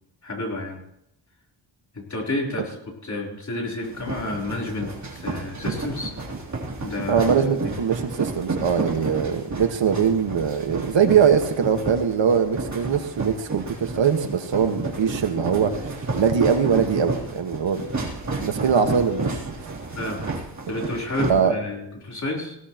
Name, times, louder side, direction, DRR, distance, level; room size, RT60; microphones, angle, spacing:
voice 1, 0.2-0.8 1.9-2.8 3.0-6.2 6.8-7.3 7.6-7.7 19.9-20.2 20.7-22.6, left 2 dB, 40° left, -2 dB, 3.7 m, -30 dB
sound 1, 3.8-21.3, right 3 dB, 40° right, 3.3 m, -31 dB
voice 2, 7.1-17.9 18.4-19.8 21.3-21.5, right 7 dB, 75° right, 5 dB, 1.6 m, -22 dB
19.5 x 17.0 x 3.0 m, 0.80 s
wide cardioid pair, 165°, 45 cm